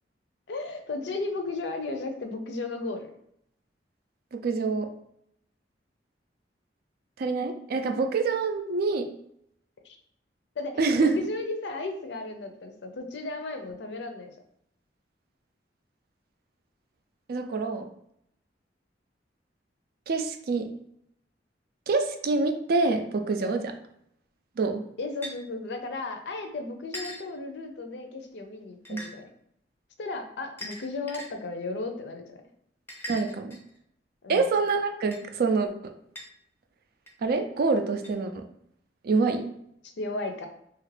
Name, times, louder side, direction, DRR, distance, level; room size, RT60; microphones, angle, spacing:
voice 1, 0.5-3.1 9.8-10.0 10.6-14.3 23.4-23.6 25.0-29.3 30.0-32.4 34.2-34.5 40.0-40.5, left 3 dB, 70° left, 5 dB, 0.5 m, -35 dB
voice 2, 4.3-4.9 7.2-9.1 10.8-11.3 17.3-17.9 20.1-20.7 21.9-23.7 24.6-24.8 28.9-29.0 33.1-33.6 34.3-35.7 37.2-38.4 39.0-39.5, right 4 dB, 55° right, 7 dB, 0.4 m, -26 dB
sound 1, 25.2-25.3 26.9-27.2 28.8-29.1 30.6-31.3 32.9-33.8 35.1-35.2 36.1-36.3 37.1-37.2 38.0-38.1, equal, 15° left, 0.5 m, -39 dB
2.9 x 2.4 x 3.2 m, 0.73 s
head